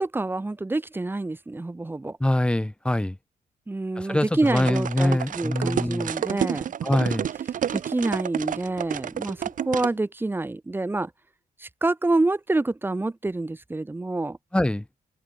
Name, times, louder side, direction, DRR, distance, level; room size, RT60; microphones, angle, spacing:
voice 1, 0.0-2.2 3.7-6.7 7.7-11.1 11.6-14.4, right 2 dB, 15° right, 1.9 m, -27 dB
voice 2, 2.2-3.2 4.0-6.1 6.8-7.3 14.5-14.8, left 1 dB, 5° left, 6.1 m, -24 dB
sound 1, 4.5-9.9, right 9 dB, 60° right, 1.4 m, -30 dB
wide cardioid pair, 145°, 15 cm